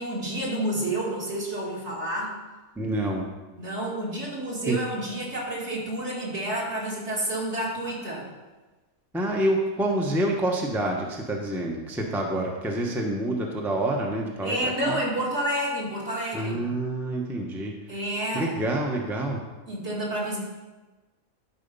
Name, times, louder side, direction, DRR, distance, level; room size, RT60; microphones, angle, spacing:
voice 1, 0.0-2.4 3.6-8.3 14.4-16.7 17.9-18.6 19.7-20.4, right 1 dB, 55° right, -4 dB, 2.7 m, -29 dB
voice 2, 2.8-3.2 4.7-4.8 9.1-15.0 16.3-17.8 18.3-19.4, right 1 dB, ahead, 0 dB, 0.8 m, -27 dB
12.0 x 5.0 x 5.4 m, 1.2 s
omnidirectional pair, 1.4 m